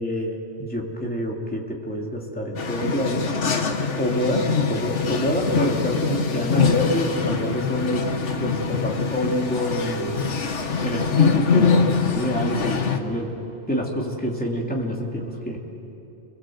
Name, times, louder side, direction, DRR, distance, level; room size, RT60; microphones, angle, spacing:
voice 1, 0.0-3.3 3.9-10.2 10.8-13.3 13.7-15.6, equal, 5° left, -2 dB, 3.0 m, -26 dB
sound 1, 2.6-13.0, left 5 dB, 75° left, 1.7 m, -24 dB
29.5 x 22.5 x 7.9 m, 2.8 s
omnidirectional pair, 1.2 m